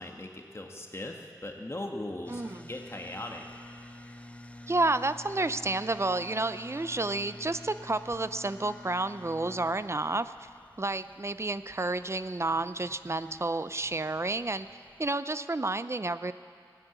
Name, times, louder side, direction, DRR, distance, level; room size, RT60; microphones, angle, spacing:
voice 1, 0.0-2.4 2.7-3.4, left 1 dB, 35° left, 2 dB, 1.5 m, -39 dB
sound 1, 2.2-15.1, left 1 dB, 15° left, 0.6 m, -50 dB
voice 2, 2.3-2.7 4.7-10.5 10.8-14.7 15.0-16.3, right 2 dB, 35° right, 13 dB, 0.6 m, -30 dB
16.5 x 9.7 x 8.2 m, 2.2 s
wide cardioid pair, 45°, 8 cm